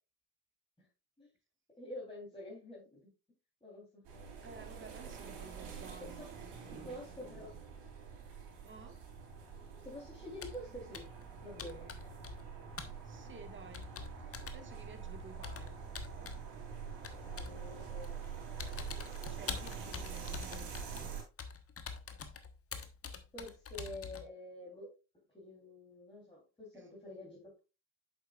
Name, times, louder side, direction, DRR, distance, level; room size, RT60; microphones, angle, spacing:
voice 1, 1.8-3.0 3.6-4.0 6.8-7.5 9.8-11.0 11.4-11.9 17.2-18.2 23.3-24.9 25.3-27.6, left 1 dB, 10° left, 3.4 m, -48 dB
sound 1, 4.0-21.2, right 6 dB, 65° right, 3.5 m, -46 dB
voice 2, 4.4-7.0 8.6-9.0 13.0-13.9 14.2-16.4 19.3-21.2 26.7-26.9, right 4 dB, 25° right, 1.5 m, -54 dB
Computer keyboard, 10.4-10.7 10.9-11.2 11.6-12.5 12.8-13.0 13.7-14.6 15.4-16.4 17.0-17.6 18.0-18.2 18.6-24.3, left 5 dB, 30° left, 1.2 m, -45 dB
8.3 x 7.1 x 2.4 m
hypercardioid pair, 60°, 43 cm